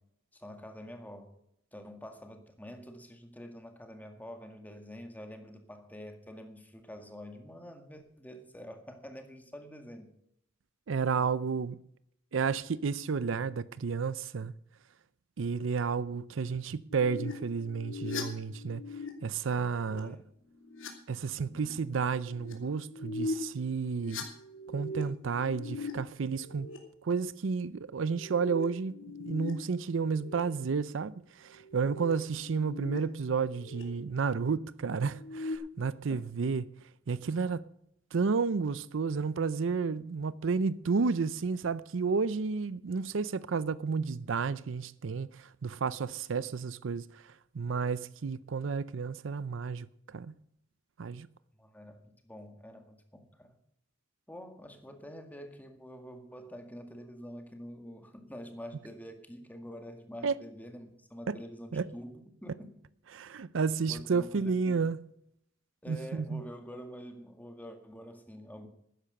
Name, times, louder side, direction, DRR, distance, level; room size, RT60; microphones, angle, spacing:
voice 1, 0.3-1.3 1.7-10.1 20.0-20.3 51.6-52.0 52.2-53.6 54.3-62.8 63.9-64.9 65.8-68.7, equal, 10° left, 1.9 m, -47 dB
voice 2, 10.9-11.8 12.3-14.5 15.4-18.8 19.2-20.2 21.1-24.2 24.7-26.7 27.0-36.7 37.1-37.7 38.1-47.0 47.5-50.3 51.0-51.3 60.2-60.4 61.3-61.4 61.7-61.9 63.1-65.0 65.9-66.4, right 5 dB, 70° right, 0.5 m, -31 dB
sound 1, 16.9-19.1 19.5-20.0 20.4-20.9 21.3-21.7 22.1-22.5 22.8-23.3 23.8-25.9 26.2-26.8 28.0-29.5 29.8-30.4 31.5-33.0 33.3-33.8 35.1-35.6, left 2 dB, 75° left, 2.7 m, -41 dB
12.5 x 10.0 x 6.5 m
head